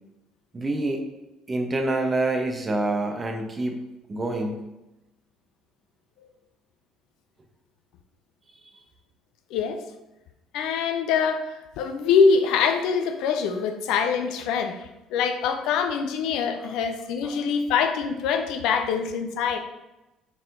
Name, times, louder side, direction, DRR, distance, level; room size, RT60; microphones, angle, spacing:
voice 1, 0.5-1.0 1.5-3.8 4.1-4.6 16.6-16.7 17.2-17.4, right 2 dB, 30° right, 3 dB, 0.8 m, -27 dB
voice 2, 9.5-9.8 10.5-11.5 11.8-14.8 15.1-19.6, left 6 dB, 70° left, 7 dB, 0.4 m, -24 dB
4.5 x 3.6 x 2.5 m, 0.97 s
hypercardioid pair, 60°, 0 cm